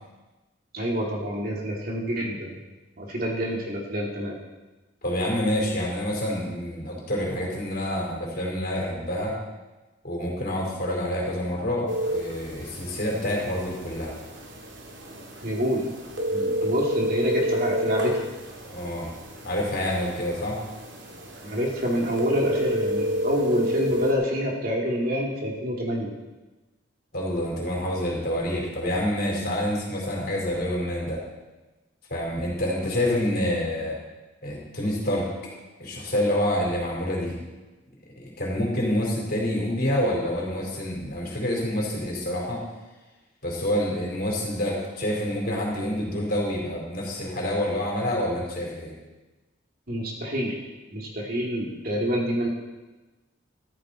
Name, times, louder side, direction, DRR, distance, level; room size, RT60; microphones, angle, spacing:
voice 1, 0.7-2.6 3.0-4.4 15.4-15.9 16.3-18.3 21.4-26.1 49.9-50.6 50.9-52.5, equal, 50° right, -1 dB, 2.6 m, -27 dB
voice 2, 5.0-9.3 10.0-14.1 18.6-19.1 19.4-20.6 27.1-31.2 32.1-34.0 34.4-35.3 35.8-37.4 38.2-42.6 43.4-48.9, left 1 dB, 50° left, -2 dB, 4.0 m, -27 dB
sound 1, 11.9-24.1, equal, 75° right, 2.5 m, -30 dB
14.0 x 13.5 x 4.2 m, 1.1 s
head